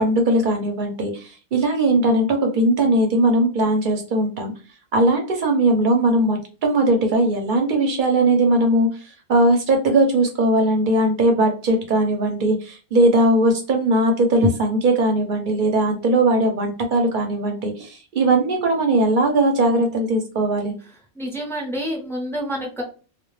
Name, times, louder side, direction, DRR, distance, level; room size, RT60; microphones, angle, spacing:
voice 1, 0.0-4.5 4.9-20.7, right 1 dB, 55° right, 3 dB, 0.6 m, -19 dB
voice 2, 21.1-22.8, equal, 5° left, -2 dB, 0.3 m, -28 dB
2.1 x 2.1 x 3.0 m, 0.35 s
omnidirectional pair, 1.2 m